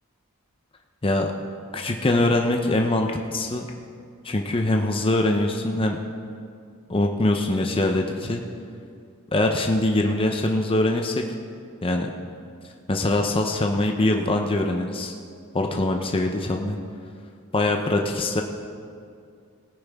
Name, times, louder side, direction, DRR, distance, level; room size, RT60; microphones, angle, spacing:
voice 1, 1.7-3.7 4.2-6.0 6.9-8.4 9.3-11.2 11.8-12.1 12.9-15.1 15.5-16.8 17.5-18.4, left 2 dB, 25° left, 3 dB, 0.7 m, -23 dB
18.5 x 9.6 x 3.5 m, 2.4 s
head